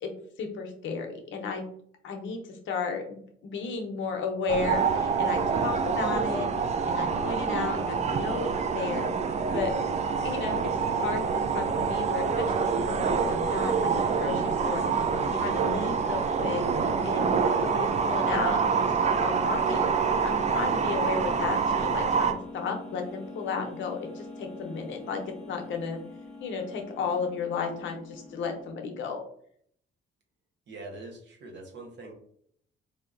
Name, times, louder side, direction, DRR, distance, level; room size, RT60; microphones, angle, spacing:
voice 1, 0.4-1.6 2.0-6.5 6.8-9.1 9.5-9.8 10.2-26.0 26.4-29.2, left 5 dB, 75° left, 3 dB, 0.7 m, -34 dB
sound 1, 4.5-22.3, right 5 dB, 35° right, 0.4 m, -26 dB
sound 2, 17.9-28.7, left 2 dB, ahead, 0.9 m, -44 dB
voice 2, 30.7-32.1, right 2 dB, 65° right, 1 dB, 1.0 m, -43 dB
3.6 x 2.7 x 2.5 m, 0.64 s
cardioid pair, 90°, 20 cm